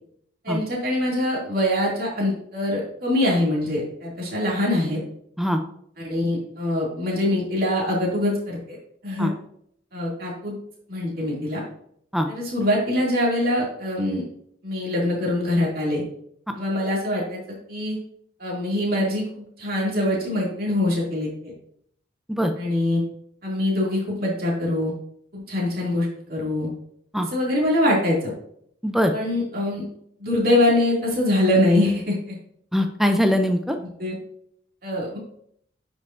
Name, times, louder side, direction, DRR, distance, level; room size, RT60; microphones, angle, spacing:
voice 1, 0.4-5.0 6.0-8.8 9.0-9.3 9.9-10.5 10.9-11.6 12.3-14.2 14.6-16.0 16.5-17.4 17.7-18.0 18.4-21.5 22.6-23.0 23.4-24.9 25.3-26.7 27.3-28.3 29.1-29.8 30.2-32.3 34.0-34.1 34.8-35.2, left 1 dB, 50° right, -4 dB, 2.6 m, -23 dB
voice 2, 32.7-33.8, equal, ahead, 5 dB, 0.5 m, -21 dB
9.6 x 5.3 x 2.6 m, 0.69 s
head